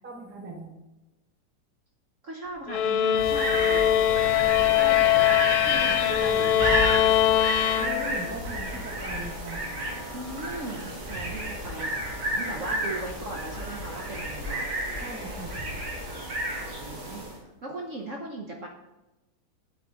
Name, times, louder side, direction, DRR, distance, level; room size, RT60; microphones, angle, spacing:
voice 1, 0.0-0.7 4.8-5.0 7.8-9.8 12.4-12.7 15.0-15.6, right 2 dB, 10° right, 1 dB, 0.7 m, -39 dB
voice 2, 2.2-3.9 4.7-7.0 10.1-11.9 12.3-14.7 16.8-17.3 17.6-18.7, right 2 dB, 55° right, 1 dB, 0.9 m, -38 dB
sound 1, 2.7-8.4, left 11 dB, 90° left, 1.5 m, -22 dB
sound 2, 3.1-17.4, right 1 dB, 75° right, 2.9 m, -32 dB
9.1 x 5.9 x 3.9 m, 0.99 s
omnidirectional pair, 2.3 m